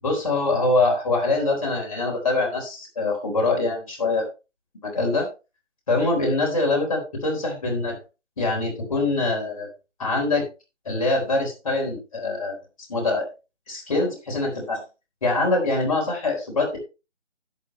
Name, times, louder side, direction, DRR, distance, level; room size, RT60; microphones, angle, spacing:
voice 1, 0.0-4.2 4.8-5.3 5.9-8.0 8.4-9.7 10.0-10.5 10.9-12.6 12.9-13.3 13.7-14.8 15.2-16.8, left 2 dB, 30° left, -1 dB, 3.8 m, -24 dB
11.5 x 9.9 x 3.1 m, 0.29 s
figure-of-eight pair, 165°, 35 cm